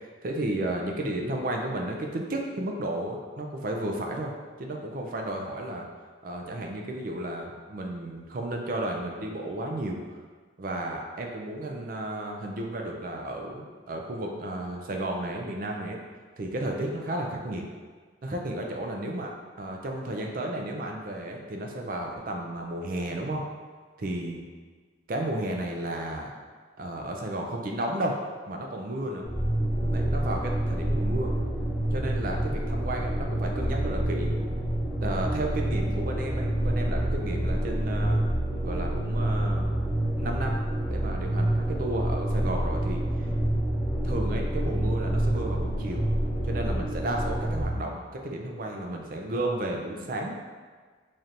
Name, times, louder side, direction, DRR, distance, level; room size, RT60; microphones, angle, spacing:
voice 1, 0.2-5.8 6.2-10.0 10.6-16.0 16.4-17.6 18.2-23.4 24.0-24.5 25.1-26.3 26.8-28.2 28.5-29.3 29.9-31.3 31.9-34.3 35.0-38.2 38.6-39.8 40.2-40.6 40.9-43.3 44.0-46.0 46.4-50.3, right 1 dB, 50° right, 1 dB, 0.4 m, -33 dB
sound 1, 29.2-47.7, right 1 dB, 5° right, 0.8 m, -27 dB
4.1 x 3.2 x 2.5 m, 1.5 s
head